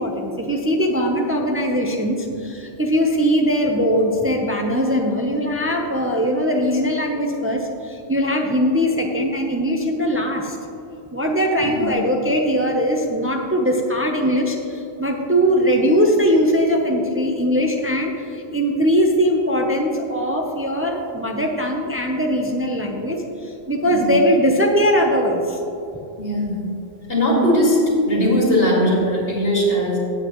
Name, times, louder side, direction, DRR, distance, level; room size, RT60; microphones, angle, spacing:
voice 1, 0.0-10.6 11.1-25.6, equal, 15° right, 1 dB, 0.7 m, -20 dB
voice 2, 11.6-11.9 23.8-24.1 26.2-26.6 27.1-27.8 28.1-30.0, equal, 70° left, -3 dB, 2.5 m, -19 dB
16.0 x 7.7 x 3.1 m, 2.8 s
omnidirectional pair, 1.0 m